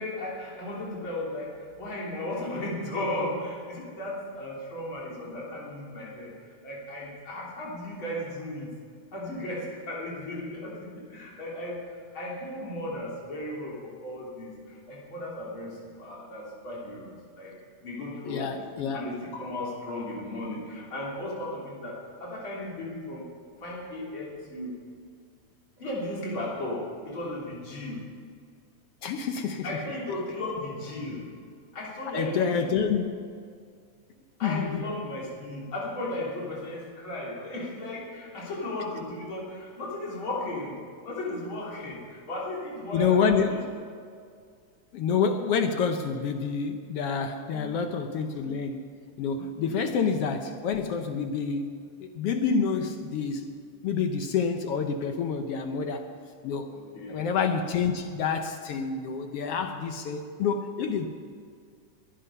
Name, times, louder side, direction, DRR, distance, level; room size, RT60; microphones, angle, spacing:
voice 1, 0.0-6.3 6.6-8.7 9.1-14.6 14.9-17.5 17.8-18.7 18.9-23.2 23.6-24.7 25.8-28.0 29.6-31.3 31.7-32.7 34.4-43.4 47.5-47.8 49.6-49.7 56.7-57.2, left 1 dB, 40° left, -5 dB, 3.9 m, -35 dB
voice 2, 18.3-19.1 29.0-29.7 32.1-33.1 34.4-34.9 42.9-43.7 44.9-48.8 49.2-51.8 52.1-53.5 53.8-56.1 56.4-56.8 57.1-61.1, left 6 dB, 75° left, 6 dB, 1.4 m, -28 dB
22.0 x 9.7 x 5.5 m, 2.2 s
omnidirectional pair, 3.5 m